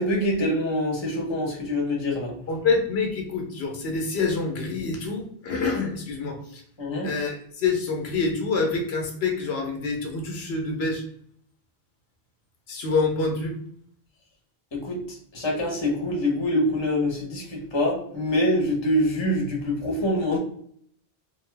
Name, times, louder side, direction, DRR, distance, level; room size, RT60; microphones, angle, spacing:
voice 1, 0.0-2.3 6.8-7.1 14.7-20.4, left 1 dB, 30° left, -2 dB, 0.8 m, -25 dB
voice 2, 2.5-6.6 7.0-11.0 12.7-13.6, left 4 dB, 85° left, 2 dB, 1.0 m, -26 dB
2.7 x 2.2 x 3.2 m, 0.63 s
omnidirectional pair, 1.0 m